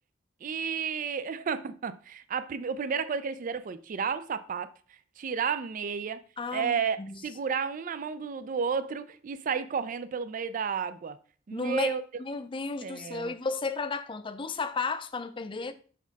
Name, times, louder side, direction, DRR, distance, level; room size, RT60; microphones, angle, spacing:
voice 1, 0.4-6.2 6.5-11.2 11.5-12.0 12.8-13.3, right 6 dB, 45° right, 0.4 m, -32 dB
voice 2, 6.4-7.2 11.5-15.7, left 4 dB, 25° left, 0.5 m, -33 dB
6.0 x 4.2 x 4.0 m
head